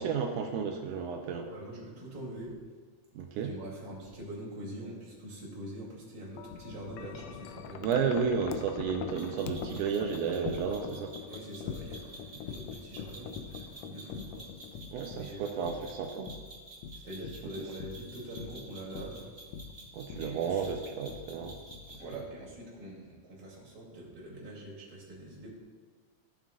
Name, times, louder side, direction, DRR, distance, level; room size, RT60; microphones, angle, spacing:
voice 1, 0.0-1.5 3.2-3.5 7.8-11.2 14.9-16.3 19.9-21.6, right 6 dB, 80° right, 3 dB, 2.2 m, -32 dB
voice 2, 1.5-2.5 3.3-8.0 11.3-14.5 15.1-15.6 16.9-19.3 20.2-20.6 22.0-25.5, right 1 dB, 35° right, -6 dB, 2.8 m, -44 dB
Wind chime, 6.4-22.6, left 7 dB, 90° left, 1.5 m, -44 dB
sound 1, 9.2-22.2, right 2 dB, 55° right, 0.5 m, -51 dB
15.0 x 7.3 x 2.5 m, 1.5 s
omnidirectional pair, 3.6 m